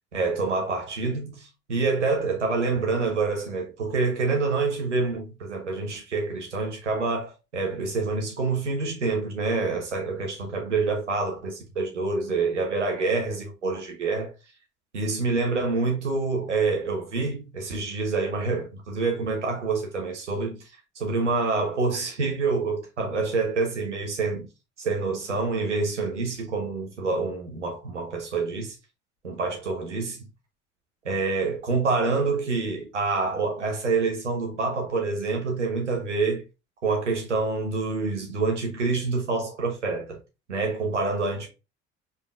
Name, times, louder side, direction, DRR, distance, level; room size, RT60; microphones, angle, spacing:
voice 1, 0.1-14.3 14.9-20.6 20.9-24.5 24.8-28.7 29.2-30.3 31.0-36.4 36.8-40.2 40.5-41.5, right 3 dB, 85° right, 1.1 m, -27 dB
5.2 x 4.0 x 2.4 m
figure-of-eight pair, 55°, 35 cm